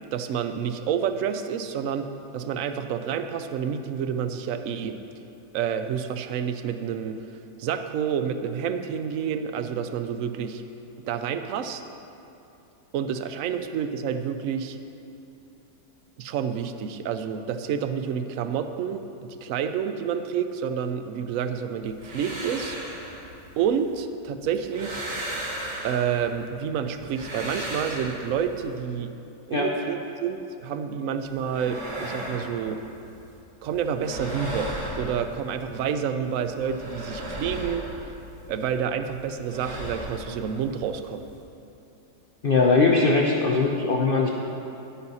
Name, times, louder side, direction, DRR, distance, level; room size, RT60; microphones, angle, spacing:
voice 1, 0.1-5.0 5.5-7.2 7.6-10.6 11.1-11.8 12.9-14.8 16.2-22.8 23.6-25.0 25.8-29.1 29.5-32.8 33.6-34.7 35.0-37.8 38.5-41.2, right 7 dB, 70° right, 9 dB, 0.8 m, -29 dB
sound 1, 21.8-24.0 24.4-26.5 26.9-28.8 31.2-33.4 33.6-35.9 36.2-38.8 39.0-41.4, equal, 45° right, 2.0 m, -37 dB
voice 2, 42.4-44.3, left 3 dB, 55° left, 0 dB, 0.6 m, -20 dB
11.0 x 9.5 x 4.1 m, 2.8 s
omnidirectional pair, 1.7 m